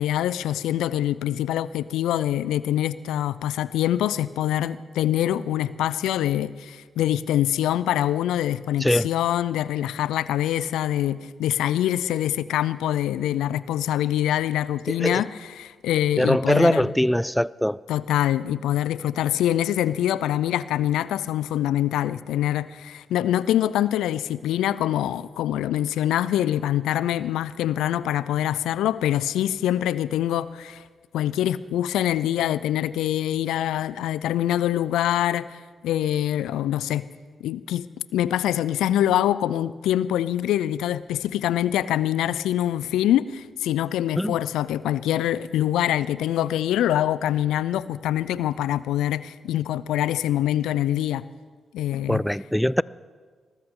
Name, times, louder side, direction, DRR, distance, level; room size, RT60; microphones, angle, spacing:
voice 1, 0.0-16.9 17.9-30.8 31.1-37.0 37.4-37.9 38.1-51.2 51.7-52.2, left 12 dB, 85° left, 0.3 m, -24 dB
voice 2, 8.8-9.1 14.9-15.2 16.2-17.8 44.2-44.4 52.1-52.8, equal, 5° left, 0.3 m, -22 dB
20.5 x 13.5 x 3.7 m
supercardioid pair, 45°, 0 cm